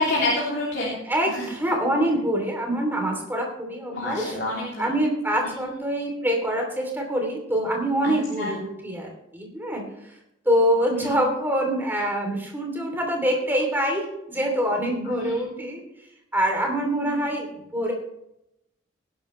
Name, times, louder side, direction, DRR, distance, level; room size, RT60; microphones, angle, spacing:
voice 1, 0.0-1.0 1.3-1.5 3.9-4.9 8.0-8.5 10.9-11.2 15.0-15.5 17.0-17.2, left 2 dB, 55° left, -4 dB, 3.2 m, -28 dB
voice 2, 1.1-4.4 4.8-9.8 10.4-15.8 16.3-17.9, equal, 10° right, 1 dB, 3.0 m, -25 dB
18.5 x 11.0 x 3.2 m, 0.84 s
head